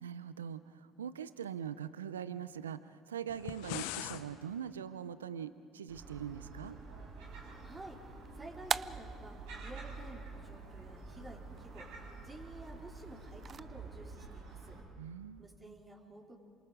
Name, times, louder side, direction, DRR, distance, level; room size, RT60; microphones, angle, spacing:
voice 1, 0.0-6.8 15.0-15.4, right 8 dB, 90° right, 15 dB, 0.5 m, -42 dB
sound 1, 3.3-4.3, left 14 dB, 75° left, 0.8 m, -40 dB
Gull seagull, 5.9-14.8, right 3 dB, 70° right, 5.0 m, -48 dB
sound 2, 7.2-13.6, right 6 dB, 40° right, 0.5 m, -44 dB
voice 2, 7.6-8.1 8.3-9.3 9.6-11.9 12.2-14.8 15.4-16.4, right 2 dB, 25° right, -1 dB, 4.1 m, -51 dB
28.0 x 25.5 x 5.1 m, 2.3 s
hypercardioid pair, 60°, 0 cm